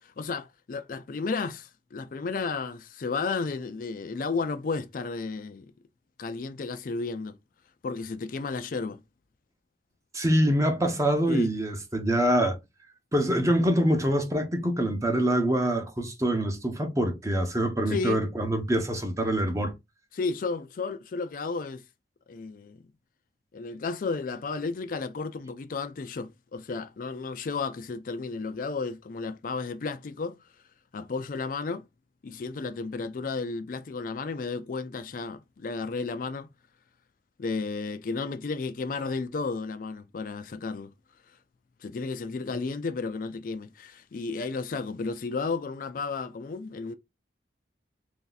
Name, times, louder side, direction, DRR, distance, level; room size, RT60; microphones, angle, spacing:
voice 1, 0.0-5.7 6.2-7.3 7.8-9.0 11.3-11.5 17.9-18.3 20.1-21.8 22.3-22.9 23.5-30.4 30.9-31.8 32.2-36.5 37.4-40.9 41.8-46.9, left 4 dB, 50° left, 0.4 m, -33 dB
voice 2, 10.1-12.6 13.1-19.7, right 1 dB, 20° right, 0.8 m, -25 dB
3.4 x 2.7 x 3.9 m
head